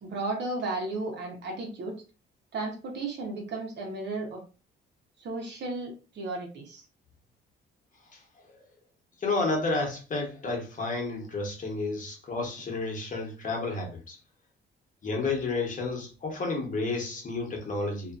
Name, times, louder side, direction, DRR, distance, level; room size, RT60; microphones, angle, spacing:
voice 1, 0.0-2.0 2.5-4.4 5.2-6.8, right 2 dB, 60° right, 1 dB, 1.0 m, -34 dB
voice 2, 9.2-14.2 15.0-18.1, left 3 dB, 40° left, 0 dB, 1.1 m, -31 dB
2.6 x 2.5 x 2.5 m, 0.34 s
cardioid pair, 90°, 20 cm